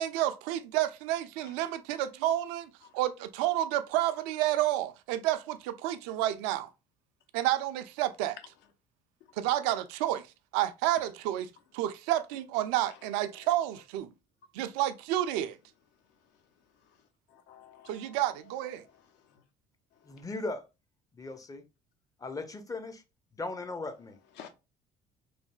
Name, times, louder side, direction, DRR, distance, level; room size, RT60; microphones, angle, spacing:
voice 1, 0.0-6.7 7.3-8.4 9.4-10.3 10.5-14.1 14.5-15.6 17.9-18.8, right 13 dB, 65° right, 0.4 m, -30 dB
voice 2, 17.3-18.2 18.8-19.0 19.3-19.4 20.1-20.2 24.4-24.5, left 9 dB, 60° left, 0.6 m, -52 dB
voice 3, 20.0-20.7 21.1-21.6 22.2-23.0 23.3-24.2, left 2 dB, 15° left, 0.5 m, -38 dB
3.2 x 2.6 x 2.3 m
figure-of-eight pair, 55°, 20 cm